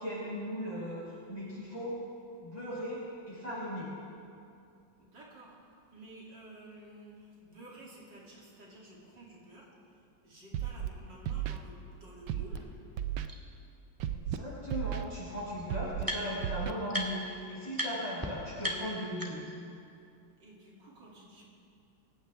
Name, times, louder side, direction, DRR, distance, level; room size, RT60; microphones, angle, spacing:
voice 1, 0.0-2.0 2.4-3.9 14.1-19.5, equal, 20° left, -10 dB, 5.3 m, -38 dB
voice 2, 5.0-12.7 20.4-21.4, right 1 dB, 65° right, -5 dB, 3.5 m, -52 dB
Scratching (performance technique), 10.5-10.9 11.3-11.6 12.3-12.6 13.0-13.3 14.0-14.4 14.7-15.0 15.7-16.0 16.4-16.7, right 11 dB, 85° right, 1.5 m, -34 dB
sound 1, 12.6-12.7 13.3-13.4 14.7-14.8 15.0-16.5 16.9-17.3 17.7-17.9 18.2-18.3 18.6-19.6, equal, 10° right, 1.6 m, -37 dB
26.5 x 16.0 x 3.5 m, 2.5 s
omnidirectional pair, 2.0 m